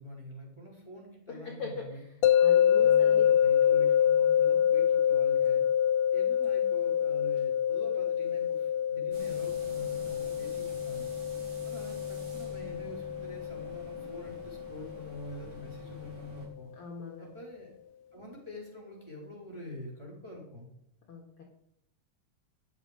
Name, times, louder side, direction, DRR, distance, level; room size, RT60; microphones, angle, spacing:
voice 1, 0.0-2.0 2.7-5.6 6.1-11.1 11.6-16.7 17.2-17.8 18.1-20.7, left 1 dB, 10° right, -1 dB, 4.2 m, -46 dB
voice 2, 1.3-3.2 3.7-3.8 16.7-17.3 21.1-21.4, left 3 dB, 50° left, 0 dB, 2.2 m, -41 dB
sound 1, 2.2-15.3, left 9 dB, 80° left, 2.2 m, -26 dB
sound 2, 9.1-16.5, left 1 dB, 65° right, 5.3 m, -48 dB
13.5 x 9.9 x 5.1 m, 0.75 s
omnidirectional pair, 3.8 m